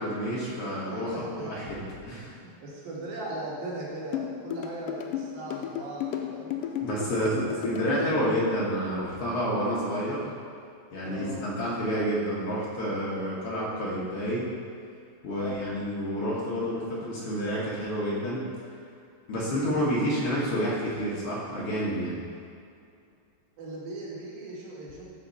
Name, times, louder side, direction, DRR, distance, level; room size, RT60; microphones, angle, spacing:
voice 1, 0.0-2.3 6.8-10.3 10.9-14.5 15.2-18.5 19.3-22.2, equal, 60° left, -6 dB, 1.6 m, -29 dB
voice 2, 0.8-1.5 2.1-6.6 7.1-7.5 11.0-11.4 15.3-15.7 23.6-25.2, right 2 dB, 80° right, -5 dB, 3.4 m, -39 dB
sound 1, 4.1-8.1, left 10 dB, 80° left, 2.1 m, -33 dB
13.0 x 4.4 x 4.2 m, 2.4 s
omnidirectional pair, 4.2 m